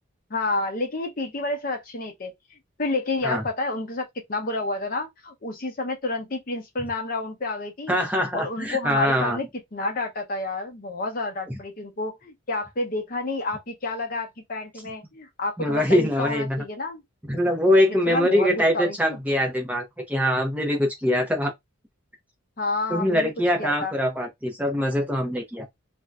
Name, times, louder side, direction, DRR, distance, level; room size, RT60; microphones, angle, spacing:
voice 1, 0.3-8.0 8.3-9.5 9.7-17.0 17.9-19.2 22.6-23.3 23.6-23.9, left 2 dB, 45° left, 0.7 m, -30 dB
voice 2, 7.9-9.4 15.6-16.6 17.3-21.5 22.9-25.6, equal, 5° right, 0.6 m, -23 dB
2.6 x 2.2 x 3.3 m
head